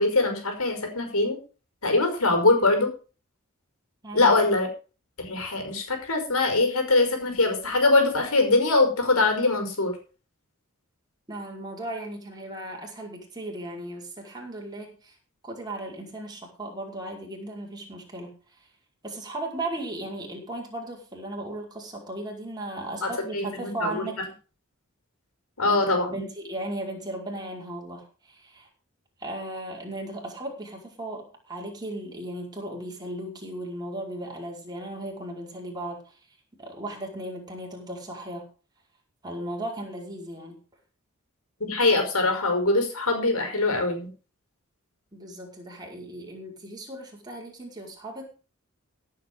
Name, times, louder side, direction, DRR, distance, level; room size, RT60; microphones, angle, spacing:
voice 1, 0.0-1.4 1.8-2.9 4.1-4.7 5.2-10.0 23.0-24.0 25.6-26.2 41.6-44.1, left 2 dB, 90° left, 5 dB, 5.5 m, -23 dB
voice 2, 4.0-4.3 11.3-15.2 15.4-18.3 19.0-24.2 25.6-25.8 26.1-28.7 29.2-36.1 36.6-38.5 39.2-40.6 45.1-48.3, right 1 dB, 20° right, -1 dB, 5.3 m, -36 dB
16.5 x 8.5 x 5.4 m, 0.36 s
head